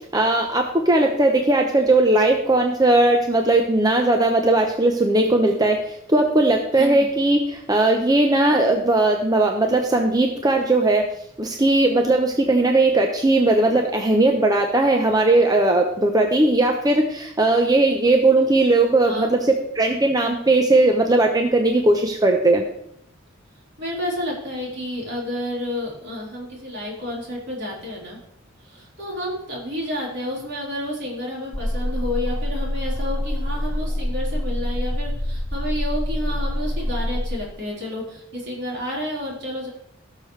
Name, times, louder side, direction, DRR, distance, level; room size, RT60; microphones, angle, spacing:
voice 1, 0.1-11.1 11.4-22.6, right 2 dB, 20° right, 3 dB, 0.8 m, -18 dB
voice 2, 6.7-7.1 19.0-19.3 23.8-28.2 28.6-39.7, left 1 dB, 60° right, -4 dB, 4.3 m, -30 dB
sound 1, 31.5-37.3, left 1 dB, 5° left, 1.3 m, -26 dB
17.0 x 6.6 x 3.3 m, 0.74 s
head